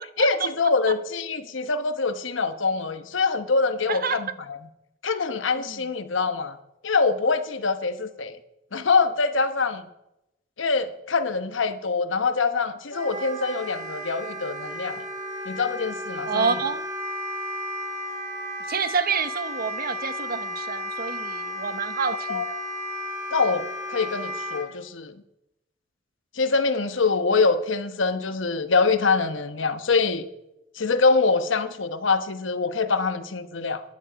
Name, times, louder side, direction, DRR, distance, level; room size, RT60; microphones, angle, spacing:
voice 1, 0.2-4.6 5.0-6.6 6.8-8.4 8.7-9.8 10.6-15.0 15.5-16.5 22.3-22.4 23.3-25.2 26.4-30.3 30.8-33.8, left 4 dB, 75° left, 1.1 m, -24 dB
voice 2, 3.9-4.2 5.6-5.8 16.3-16.8 18.7-22.6, right 5 dB, 50° right, 0.8 m, -28 dB
Wind instrument woodwind instrument, 12.9-24.6, left 1 dB, 15° right, 5.0 m, -33 dB
15.5 x 11.0 x 5.1 m
head